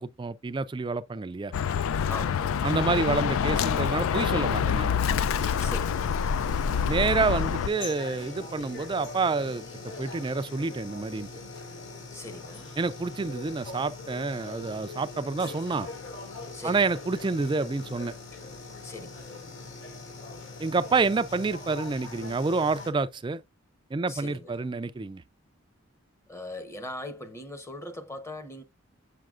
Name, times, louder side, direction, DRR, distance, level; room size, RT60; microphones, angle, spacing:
voice 1, 0.0-1.5 2.6-4.9 6.8-11.3 12.8-15.9 16.6-18.1 20.6-23.4 23.9-25.2, right 4 dB, 25° right, 0.3 m, -28 dB
Bird, 1.5-7.7, left 7 dB, 80° left, 0.3 m, -26 dB
voice 2, 2.1-2.7 5.3-6.1 12.1-12.7 16.5-16.9 18.8-19.3 24.1-24.7 26.3-28.6, left 2 dB, 15° left, 0.8 m, -40 dB
sound 1, 5.3-22.9, left 3 dB, 60° left, 2.2 m, -42 dB
7.6 x 5.6 x 2.4 m
head